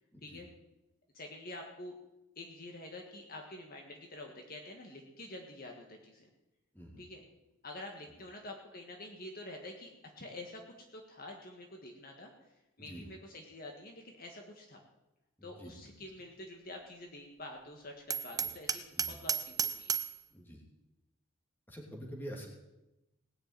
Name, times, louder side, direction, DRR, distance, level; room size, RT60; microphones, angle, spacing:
voice 1, 0.1-0.4 6.7-7.0 12.8-13.0 15.4-15.7 18.4-18.5 19.0-19.2 20.3-20.6 21.7-22.5, equal, 10° left, -1 dB, 2.8 m, -46 dB
voice 2, 1.1-2.0 2.3-6.3 7.0-7.2 7.6-14.8 15.4-19.9, left 1 dB, 45° left, 2 dB, 1.7 m, -48 dB
Hammer, 18.1-20.2, right 7 dB, 15° right, 0.6 m, -34 dB
18.5 x 6.8 x 9.0 m, 0.97 s
head